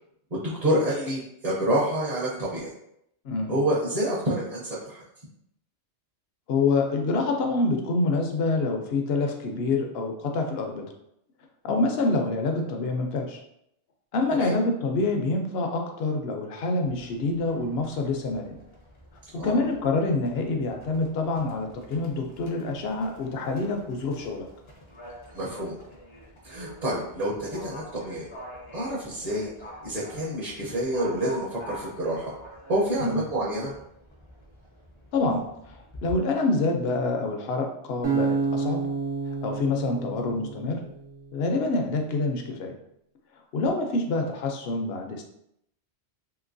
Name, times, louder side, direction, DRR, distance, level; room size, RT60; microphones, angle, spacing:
voice 1, 0.3-2.7 3.5-5.0 14.4-14.5 19.4-19.6 25.3-25.7 26.4-28.3 28.7-29.5 29.8-32.3 32.7-33.7, right 1 dB, 40° right, -6 dB, 0.7 m, -28 dB
voice 2, 6.5-10.9 11.6-13.4 14.1-18.6 19.3-24.5 33.0-33.2 35.1-35.7 36.0-38.8 39.4-40.8 41.3-42.7 43.5-45.2, left 3 dB, 65° left, 3 dB, 0.8 m, -26 dB
Livestock farm animals working animals, 16.8-36.2, equal, 40° left, 0.5 m, -46 dB
Acoustic guitar, 38.0-41.3, right 5 dB, 85° right, 1.2 m, -29 dB
2.9 x 2.9 x 2.5 m, 0.76 s
omnidirectional pair, 1.2 m